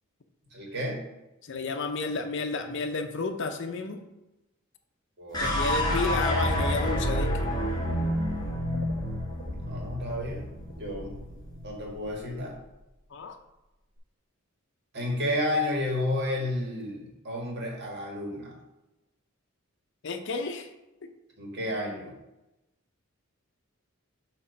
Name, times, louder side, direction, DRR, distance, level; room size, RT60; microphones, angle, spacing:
voice 1, 0.5-1.0 5.2-5.7 9.6-10.5 10.8-11.1 11.6-12.5 14.9-18.6 21.4-22.1, left 1 dB, 55° right, -1 dB, 1.7 m, -31 dB
voice 2, 1.4-4.0 5.4-7.3 13.1-13.4 20.0-20.7, left 3 dB, 60° left, 6 dB, 0.6 m, -31 dB
sound 1, 5.3-11.7, left 1 dB, 20° left, 1.2 m, -29 dB
sound 2, 5.7-12.8 14.0-14.1, right 1 dB, 75° right, 0.8 m, -38 dB
6.9 x 3.0 x 5.2 m, 0.97 s
head